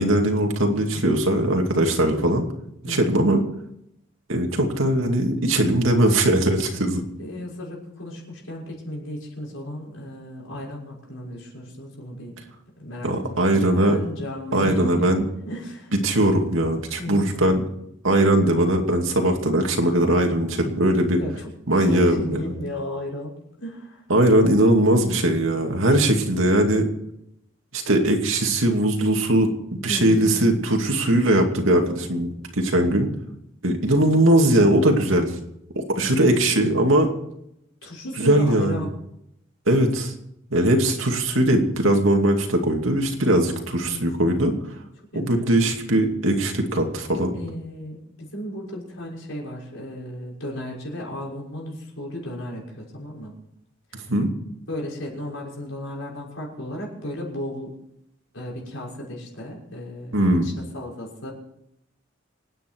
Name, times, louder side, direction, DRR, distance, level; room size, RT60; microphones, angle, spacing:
voice 1, 0.0-2.5 2.8-3.4 4.3-7.0 13.0-14.0 14.5-15.2 16.0-17.6 18.0-21.2 21.7-22.5 24.1-26.9 27.7-29.5 29.8-33.1 33.6-35.3 35.8-37.1 38.2-38.8 39.7-40.1 40.5-44.6 45.1-47.3 54.1-54.3 60.1-60.5, right 1 dB, 75° right, 3 dB, 2.6 m, -20 dB
voice 2, 0.8-1.1 2.8-3.2 6.7-6.9 7.2-12.3 12.8-13.5 13.8-15.1 15.4-15.9 17.0-17.3 21.2-24.0 29.9-30.6 36.0-36.3 37.8-38.9 43.8-44.5 45.1-45.7 47.3-53.4 53.9-54.1 54.7-57.7 58.3-61.3, left 1 dB, 75° left, -3 dB, 6.2 m, -34 dB
26.5 x 9.5 x 4.7 m, 0.80 s
head